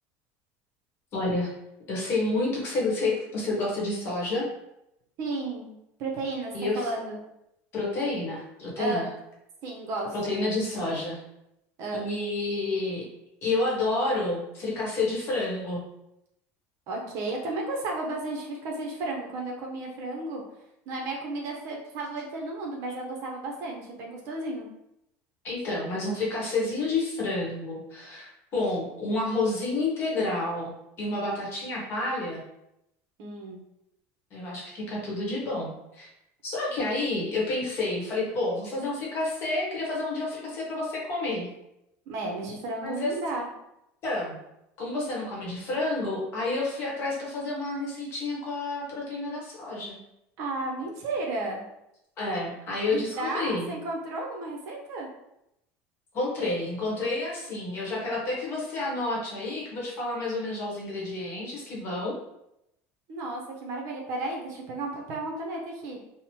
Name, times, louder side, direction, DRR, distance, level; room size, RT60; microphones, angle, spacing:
voice 1, 1.1-1.5 1.9-4.5 6.5-6.9 7.7-9.1 10.1-11.2 11.9-13.1 13.4-15.8 25.4-32.4 34.3-36.1 36.4-41.5 42.8-43.1 44.0-44.4 44.8-50.0 52.2-53.7 56.1-62.1, left 2 dB, 40° left, -4 dB, 1.0 m, -29 dB
voice 2, 5.2-5.7 6.0-7.2 8.8-9.1 9.6-10.3 11.8-12.0 16.9-20.4 20.9-24.7 33.2-33.6 42.1-43.5 50.4-51.6 52.9-55.1 63.1-66.0, right 2 dB, 50° right, 0 dB, 0.6 m, -33 dB
2.9 x 2.0 x 2.8 m, 0.83 s
cardioid pair, 155°, 6 cm